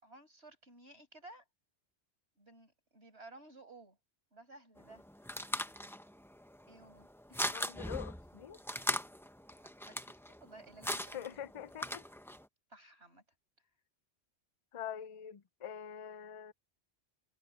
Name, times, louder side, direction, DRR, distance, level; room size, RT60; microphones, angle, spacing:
voice 1, 0.0-1.4 2.4-4.0 4.3-5.1 6.7-7.5 9.6-11.2 12.7-13.2, right 2 dB, 65° right, 6.2 m, -56 dB
sound 1, 4.8-12.4, equal, ahead, 0.7 m, -40 dB
voice 2, 7.5-8.6 11.1-12.0 14.7-16.5, left 9 dB, 45° left, 0.5 m, -44 dB
omnidirectional pair, 1.2 m